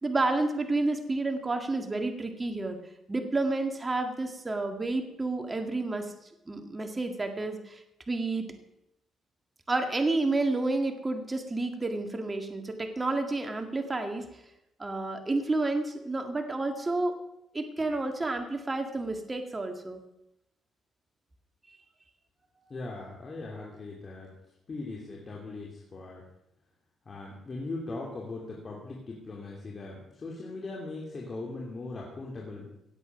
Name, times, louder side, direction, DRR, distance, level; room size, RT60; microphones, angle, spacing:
voice 1, 0.0-2.8 3.1-6.1 6.5-8.4 9.7-14.2 14.8-17.2 17.5-20.0, right 2 dB, 20° right, 5 dB, 1.9 m, -30 dB
voice 2, 22.7-24.3 24.7-26.2 27.1-32.7, left 3 dB, 40° left, -2 dB, 2.8 m, -39 dB
17.0 x 8.3 x 5.9 m, 0.85 s
cardioid pair, 90°, 0 cm